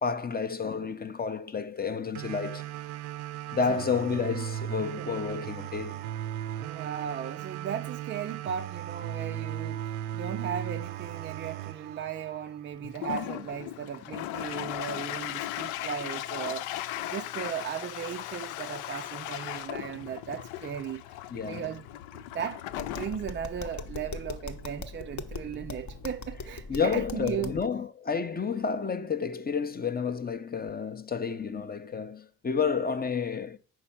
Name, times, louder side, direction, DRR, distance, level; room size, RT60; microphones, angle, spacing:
voice 1, 0.0-2.7 3.5-6.0 21.3-21.7 26.7-33.6, left 5 dB, 20° left, 0.6 m, -30 dB
sound 1, 2.1-13.1, right 12 dB, 90° right, 0.6 m, -37 dB
voice 2, 6.6-9.8 10.1-16.7 17.0-21.0 21.4-27.6, right 8 dB, 25° right, 0.3 m, -37 dB
Toilet flush, 12.8-26.0, left 14 dB, 75° left, 0.5 m, -38 dB
Tap, 22.7-27.6, left 3 dB, 35° left, 0.9 m, -40 dB
4.8 x 4.5 x 5.7 m
hypercardioid pair, 60°, 48 cm